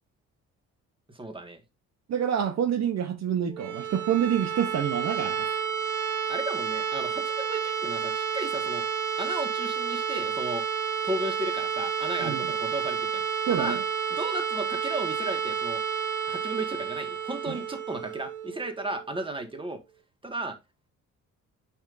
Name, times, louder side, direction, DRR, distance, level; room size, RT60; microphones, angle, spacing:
voice 1, 1.1-1.6 6.3-8.8 9.2-10.6 11.0-13.2 13.5-13.8 14.1-15.8 16.3-19.8 20.2-20.6, right 1 dB, 15° right, 1.7 m, -34 dB
voice 2, 2.1-5.5 12.2-12.4 13.5-13.8 17.5-17.6, right 9 dB, 60° right, 0.9 m, -27 dB
sound 1, 3.5-19.3, right 7 dB, 85° right, 1.3 m, -30 dB
8.7 x 5.3 x 2.6 m
cardioid pair, 90°, 30 cm